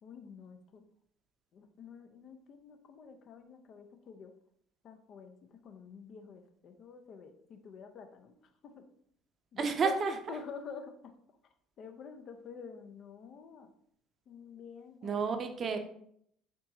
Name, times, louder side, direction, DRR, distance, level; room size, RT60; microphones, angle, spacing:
voice 1, 0.0-0.8 1.5-4.3 4.8-8.4 8.6-8.8 9.5-11.2 11.8-13.7 14.3-15.4, left 5 dB, 55° left, 6 dB, 0.5 m, -48 dB
voice 2, 9.6-10.1 15.0-15.8, right 5 dB, 45° right, 7 dB, 0.6 m, -30 dB
4.5 x 2.9 x 2.6 m, 0.68 s
hypercardioid pair, 65°, 0 cm